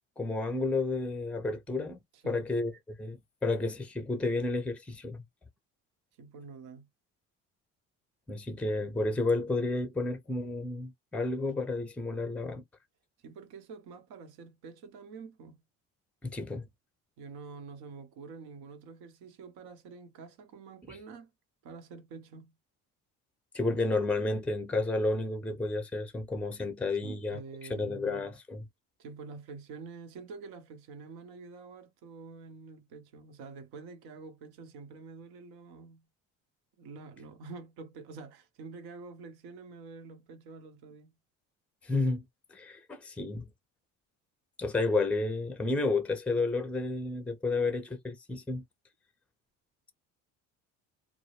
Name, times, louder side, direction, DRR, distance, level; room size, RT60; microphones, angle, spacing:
voice 1, 0.2-2.0 2.2-5.2 8.3-12.6 16.2-16.6 23.5-27.4 27.7-28.7 41.8-42.2 42.5-43.5 44.6-48.6, left 3 dB, 5° left, 0.5 m, -31 dB
voice 2, 2.1-2.5 6.2-6.9 13.2-15.6 17.2-21.3 21.6-22.5 27.0-28.2 29.0-36.0 36.8-41.1, right 4 dB, 70° right, 0.8 m, -47 dB
2.1 x 2.0 x 3.0 m
hypercardioid pair, 65°, 39 cm